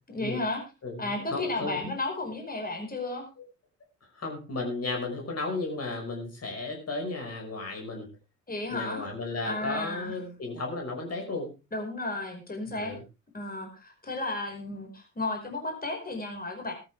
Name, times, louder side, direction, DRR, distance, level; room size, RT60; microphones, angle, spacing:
voice 1, 0.1-0.6 1.0-3.3 8.5-9.1 9.4-10.2 11.7-13.0 13.3-16.7, left 2 dB, 20° left, 3 dB, 5.1 m, -33 dB
voice 2, 0.8-1.9 4.1-8.1 8.7-11.5 12.7-13.0, left 3 dB, 40° left, 2 dB, 5.5 m, -34 dB
16.0 x 13.0 x 3.4 m, 0.29 s
figure-of-eight pair, 45°, 39 cm